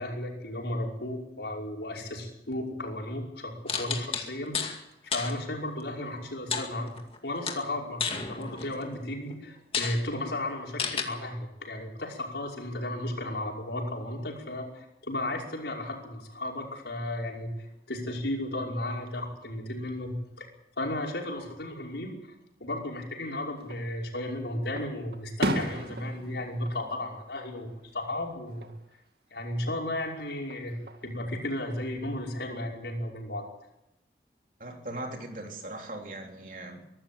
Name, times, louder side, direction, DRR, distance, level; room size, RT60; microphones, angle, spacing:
voice 1, 0.0-4.8 5.0-7.0 7.2-20.5 20.8-22.3 22.6-28.7 29.3-33.4, left 1 dB, 80° left, 0 dB, 5.5 m, -34 dB
sound 1, 3.7-4.8 5.1-5.3 6.5-7.2 7.5-8.8 9.3-9.4 9.7-10.0 10.8-11.0, left 5 dB, 30° left, 2.2 m, -31 dB
Fireworks, 23.6-24.3 24.8-27.9 28.2-28.8 30.3-31.1, right 1 dB, 70° right, 2.2 m, -35 dB
voice 2, 34.6-36.8, right 1 dB, 50° right, 2 dB, 3.5 m, -39 dB
23.5 x 13.0 x 8.9 m, 0.86 s
head